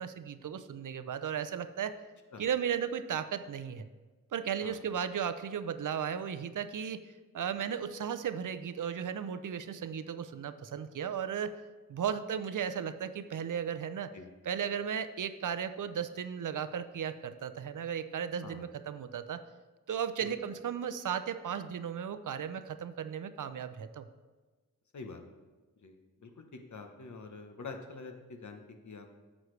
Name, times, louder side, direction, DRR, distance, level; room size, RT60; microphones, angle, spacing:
voice 1, 0.0-1.9 2.4-3.9 4.3-7.0 7.3-11.5 11.9-14.1 14.4-19.4 19.9-24.1, right 8 dB, 70° right, 11 dB, 0.5 m, -35 dB
voice 2, 25.8-26.4 26.7-29.1, left 4 dB, 60° left, 4 dB, 1.0 m, -46 dB
9.4 x 6.3 x 3.2 m, 1.3 s
wide cardioid pair, 80°, 33 cm